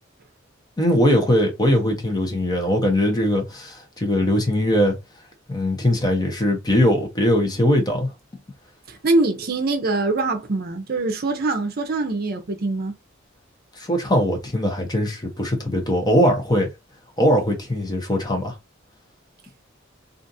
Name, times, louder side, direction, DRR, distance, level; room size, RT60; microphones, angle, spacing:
voice 1, 0.8-4.9 5.5-8.1 13.8-16.7 17.2-18.6, equal, 20° left, 0.8 m, -20 dB
voice 2, 8.9-12.9, right 2 dB, 50° right, 0.6 m, -23 dB
2.5 x 2.5 x 2.6 m
head